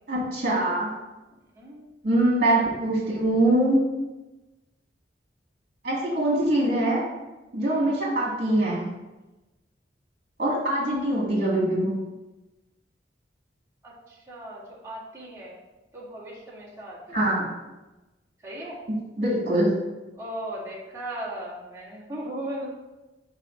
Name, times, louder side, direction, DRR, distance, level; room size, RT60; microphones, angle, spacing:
voice 1, 0.1-0.9 2.0-3.8 5.8-7.0 7.5-8.8 10.4-11.9 17.1-17.4 18.9-19.7, right 1 dB, 50° right, -5 dB, 1.9 m, -23 dB
voice 2, 1.5-1.9 7.6-7.9 13.8-15.6 15.9-17.3 18.4-18.8 20.2-22.7, right 1 dB, 15° right, -8 dB, 2.0 m, -37 dB
4.9 x 4.0 x 5.1 m, 1.1 s
head